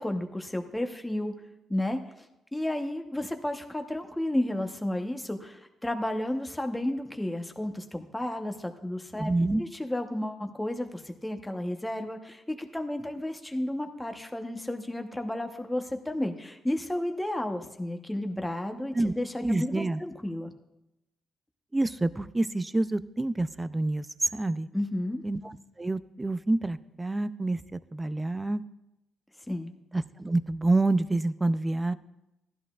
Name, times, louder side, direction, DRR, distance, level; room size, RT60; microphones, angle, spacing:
voice 1, 0.0-1.3 1.7-2.0 2.5-9.3 9.6-20.5 24.7-25.2 29.5-29.7, left 1 dB, 10° left, 5 dB, 0.9 m, -32 dB
voice 2, 9.2-9.6 18.9-19.1 19.4-20.0 21.7-24.1 24.3-24.7 25.2-28.6 29.9-32.0, right 2 dB, 15° right, 14 dB, 0.4 m, -28 dB
15.0 x 11.0 x 2.4 m, 0.93 s
cardioid pair, 90°, 0 cm